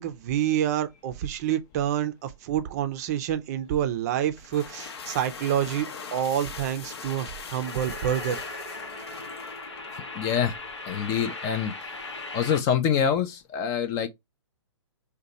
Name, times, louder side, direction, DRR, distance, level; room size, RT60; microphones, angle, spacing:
voice 1, 0.0-8.4, right 10 dB, 35° right, 0.5 m, -28 dB
sound 1, 4.4-10.0, left 5 dB, 65° left, 0.7 m, -41 dB
sound 2, 7.6-12.6, left 3 dB, 85° left, 1.0 m, -38 dB
voice 2, 10.1-10.6 10.9-11.7 12.3-14.1, left 8 dB, 25° left, 0.4 m, -25 dB
2.8 x 2.2 x 3.9 m
hypercardioid pair, 125°, 15 cm